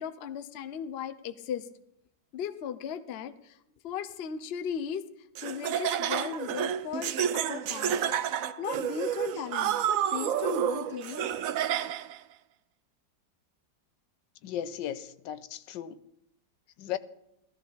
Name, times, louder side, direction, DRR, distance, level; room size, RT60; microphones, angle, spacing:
voice 1, 0.0-1.7 2.3-3.6 3.8-5.0 5.4-8.0 8.6-11.3, left 8 dB, 50° left, 0.7 m, -37 dB
Laughter, 5.4-12.2, right 9 dB, 65° right, 0.9 m, -30 dB
voice 2, 14.4-16.0 16.8-17.0, left 10 dB, 90° left, 1.4 m, -36 dB
16.0 x 14.0 x 4.1 m
omnidirectional pair, 1.9 m